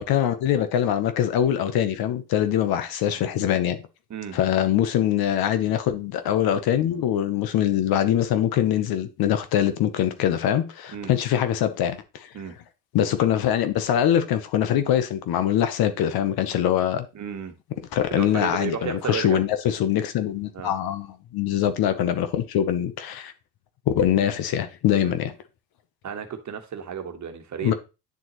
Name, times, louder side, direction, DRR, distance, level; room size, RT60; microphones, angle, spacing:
voice 1, 0.0-3.8 4.3-12.0 12.9-17.0 17.9-21.1 21.3-23.3 23.9-25.3 27.6-27.7, left 10 dB, 75° left, 1.0 m, -23 dB
voice 2, 17.1-17.5 18.1-19.4 20.5-20.7 25.0-25.2 26.0-27.7, right 7 dB, 50° right, 1.3 m, -33 dB
9.6 x 3.9 x 3.0 m
supercardioid pair, 75°, 37 cm